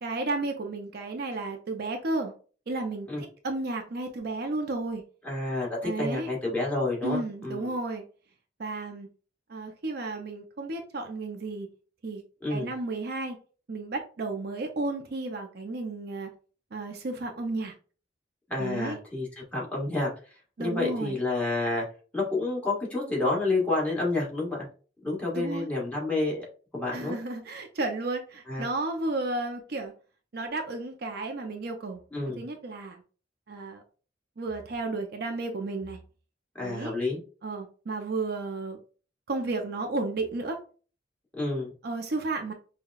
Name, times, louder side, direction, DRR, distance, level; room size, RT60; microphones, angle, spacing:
voice 1, 0.0-2.3 2.7-5.0 5.8-6.3 7.0-8.0 8.6-9.1 9.5-11.7 12.0-12.2 12.5-13.4 13.7-16.3 16.7-17.7 18.6-19.0 20.6-21.2 25.3-25.7 26.9-29.9 30.3-32.0 32.4-33.0 33.5-33.8 34.4-36.0 36.6-36.9 37.4-38.8 39.3-40.6 41.8-42.5, right 2 dB, 60° right, 5 dB, 0.5 m, -33 dB
voice 2, 5.2-7.6 12.4-12.7 18.5-19.3 19.5-20.1 20.6-21.8 22.1-24.7 25.0-26.4 26.7-27.1 28.5-28.6 32.1-32.4 36.5-37.2 41.4-41.7, left 2 dB, 10° left, -4 dB, 1.4 m, -29 dB
5.5 x 2.2 x 2.3 m, 0.37 s
head